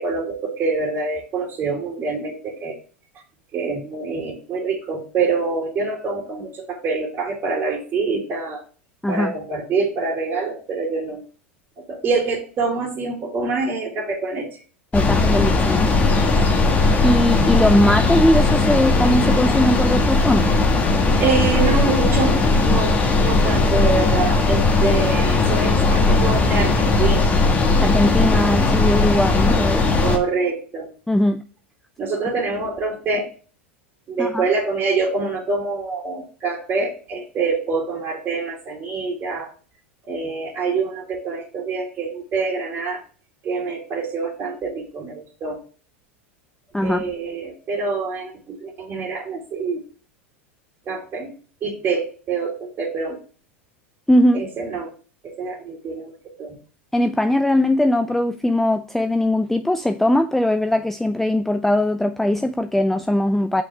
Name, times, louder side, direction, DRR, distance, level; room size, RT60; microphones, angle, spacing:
voice 1, 0.0-2.8 3.5-8.6 9.1-11.2 11.9-14.6 16.2-16.3 21.2-27.3 30.0-30.9 32.0-33.3 34.1-39.5 40.0-43.0 43.4-45.6 46.8-49.8 50.9-51.3 51.6-53.2 54.3-54.9 55.2-56.5, right 4 dB, 35° right, 2.2 m, -25 dB
voice 2, 9.0-9.3 14.9-15.9 17.0-20.5 27.8-29.8 31.1-31.4 34.2-34.5 46.7-47.0 54.1-54.5 56.9-63.6, left 1 dB, 5° left, 0.4 m, -20 dB
sound 1, 14.9-30.2, left 3 dB, 25° left, 1.4 m, -18 dB
6.3 x 5.3 x 3.4 m
hypercardioid pair, 90°, 7 cm